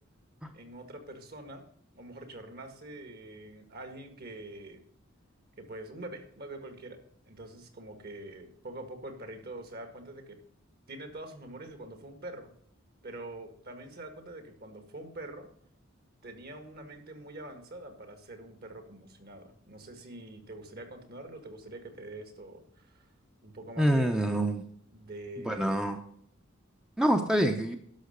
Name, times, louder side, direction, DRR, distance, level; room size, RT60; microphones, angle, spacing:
voice 1, 0.5-1.7 1.9-4.8 5.6-7.0 7.3-10.4 10.9-12.5 13.0-15.5 16.2-23.1 23.4-24.2 24.9-25.7, right 2 dB, 50° right, 8 dB, 1.9 m, -45 dB
voice 2, 23.8-24.6 25.5-26.0 27.0-27.8, right 1 dB, 5° right, 5 dB, 0.7 m, -26 dB
11.5 x 6.3 x 6.6 m, 0.65 s
head